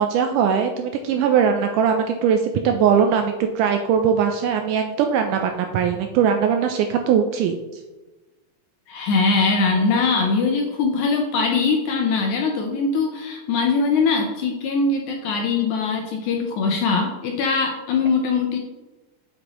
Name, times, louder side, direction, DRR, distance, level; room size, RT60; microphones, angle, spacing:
voice 1, 0.0-7.8, right 7 dB, 80° right, 5 dB, 1.9 m, -20 dB
voice 2, 8.9-18.6, left 4 dB, 75° left, 2 dB, 1.8 m, -21 dB
7.7 x 6.9 x 3.0 m, 1.1 s
omnidirectional pair, 4.1 m